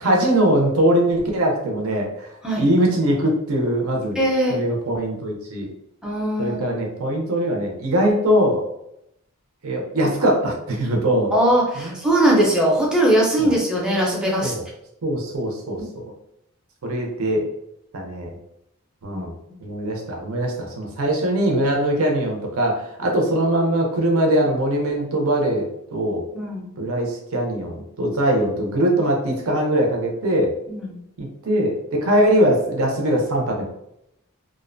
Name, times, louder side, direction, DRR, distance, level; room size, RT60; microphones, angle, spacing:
voice 1, 0.0-2.3 2.6-4.2 4.5-5.7 6.4-8.6 9.6-11.3 11.8-11.9 13.4-13.5 14.4-14.6 15.0-15.8 16.8-17.5 17.9-18.4 19.0-19.3 19.6-25.7 25.9-26.2 26.8-30.5 31.2-33.6, right 1 dB, 80° right, 1 dB, 0.6 m, -21 dB
voice 2, 4.1-4.6 6.0-6.6 11.3-14.5 15.8-15.9 19.1-19.2 26.3-26.7 30.7-31.0, right 1 dB, 5° right, -3 dB, 0.5 m, -20 dB
2.5 x 2.1 x 2.5 m, 0.80 s
head